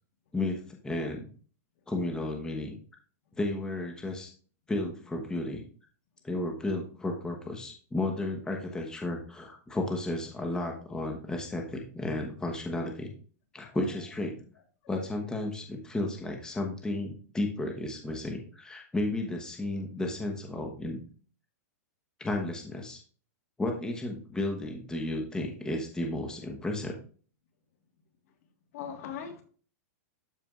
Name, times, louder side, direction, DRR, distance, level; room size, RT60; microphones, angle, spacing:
voice 1, 0.3-1.2 1.9-2.7 3.4-4.3 4.7-5.6 6.2-13.1 13.5-14.3 14.9-21.0 22.2-23.0 23.6-26.9, left 2 dB, 10° left, 2 dB, 1.0 m, -33 dB
voice 2, 28.7-29.4, left 8 dB, 60° left, 6 dB, 1.5 m, -40 dB
12.5 x 4.5 x 2.4 m, 0.41 s
hypercardioid pair, 145°, 9 cm